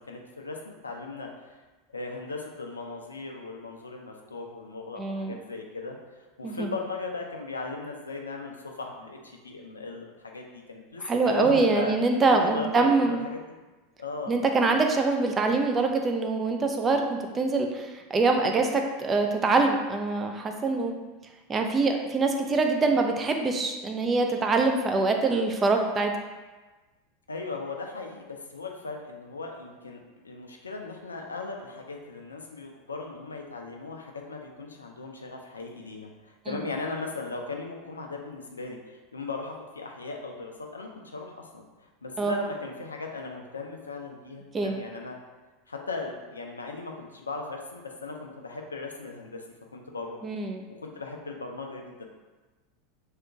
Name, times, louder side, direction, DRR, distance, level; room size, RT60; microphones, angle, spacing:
voice 1, 0.1-1.3 1.9-6.0 6.4-11.9 12.4-13.3 14.0-14.3 27.3-41.6 42.0-45.2 45.7-49.4 49.7-50.2 50.7-52.0, left 3 dB, 80° left, 2 dB, 0.4 m, -37 dB
voice 2, 5.0-5.3 6.4-6.7 11.0-13.2 14.3-21.0 21.5-26.1 42.2-42.3 44.5-44.8 50.2-50.6, right 3 dB, 25° right, 4 dB, 0.4 m, -24 dB
2.8 x 2.4 x 3.4 m, 1.2 s
figure-of-eight pair, 85°, 0 cm